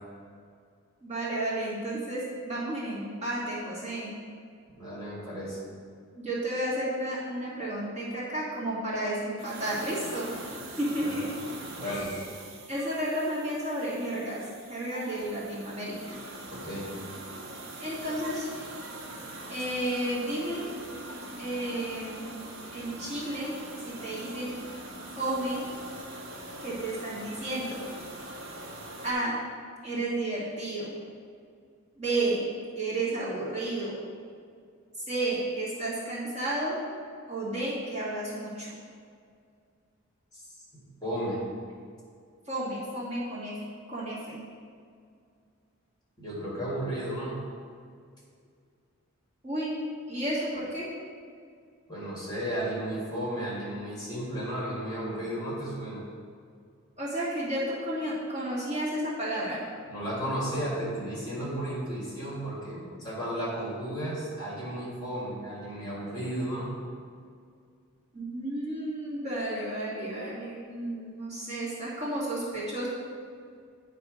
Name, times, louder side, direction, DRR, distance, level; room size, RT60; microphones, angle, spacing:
voice 1, 1.0-4.1 6.1-10.3 10.8-11.3 11.8-12.2 12.7-16.2 17.8-18.5 19.5-20.6 21.4-22.3 22.7-23.5 23.8-24.5 25.2-25.6 26.6-27.8 29.0-29.3 29.8-30.9 32.0-32.4 32.8-34.0 35.0-36.8 37.3-38.7 42.5-43.5 43.9-44.4 49.4-49.7 50.1-50.9 57.0-59.6 68.1-72.9, right 1 dB, 30° right, -8 dB, 1.8 m, -32 dB
voice 2, 4.8-5.6 11.0-11.1 11.8-12.1 16.5-16.9 40.3-40.5 40.7-41.4 46.2-47.4 51.9-56.0 59.9-66.8, right 1 dB, 20° left, -7 dB, 1.7 m, -34 dB
sound 1, 9.4-29.1, right 2 dB, 65° right, 0.8 m, -43 dB
9.5 x 3.5 x 5.0 m, 2.2 s
head